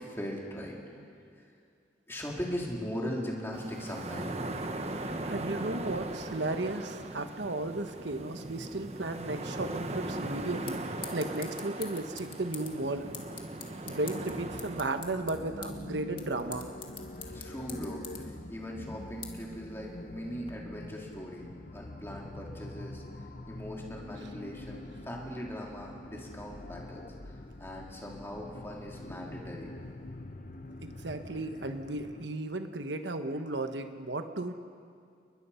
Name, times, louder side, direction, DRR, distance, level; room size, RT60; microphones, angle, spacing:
voice 1, 0.1-0.8 2.1-4.3 17.2-18.0 18.5-23.0 23.5-27.0 27.6-29.7, equal, 15° left, -2 dB, 3.3 m, -39 dB
sound 1, 3.5-14.8, right 2 dB, 35° right, 1.2 m, -39 dB
voice 2, 5.3-10.8 11.1-13.1 13.8-16.7 30.8-34.5, right 2 dB, 75° right, 7 dB, 1.1 m, -34 dB
sound 2, 10.0-20.5, left 7 dB, 30° left, 2.1 m, -48 dB
sound 3, 14.3-32.3, left 1 dB, 45° left, 0.9 m, -45 dB
30.0 x 21.5 x 5.7 m, 2.3 s
head